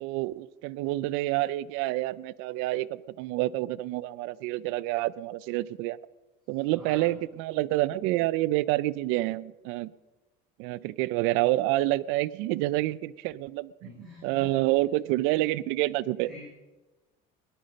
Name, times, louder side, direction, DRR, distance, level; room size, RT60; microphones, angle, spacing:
voice 1, 0.0-6.0 6.5-9.9 10.6-13.7 14.2-16.3, right 17 dB, 90° right, 19 dB, 0.5 m, -28 dB
voice 2, 6.8-7.1 13.8-14.6 16.2-16.4, left 1 dB, ahead, -7 dB, 4.5 m, -46 dB
18.0 x 11.5 x 5.2 m, 1.1 s
cardioid pair, 165°, 20 cm